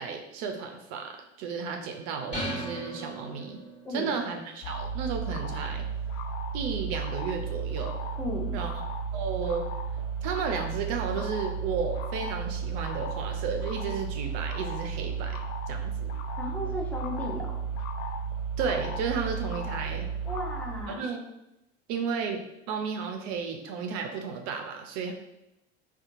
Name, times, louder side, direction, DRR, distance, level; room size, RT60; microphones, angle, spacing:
voice 1, 0.0-3.6 3.9-5.8 6.5-7.9 8.5-8.7 9.1-9.6 10.2-16.1 18.6-20.1 20.9-21.2 21.9-25.1, right 5 dB, 60° right, 4 dB, 0.5 m, -33 dB
sound 1, 2.3-3.9, right 1 dB, 20° left, 1.3 m, -36 dB
voice 2, 3.8-4.2 8.2-8.6 16.4-17.6 20.2-21.1, left 1 dB, 5° left, -3 dB, 0.6 m, -35 dB
sound 2, 4.6-20.8, right 5 dB, 50° left, 0.4 m, -33 dB
2.7 x 2.2 x 2.6 m, 0.89 s
hypercardioid pair, 80°, 35 cm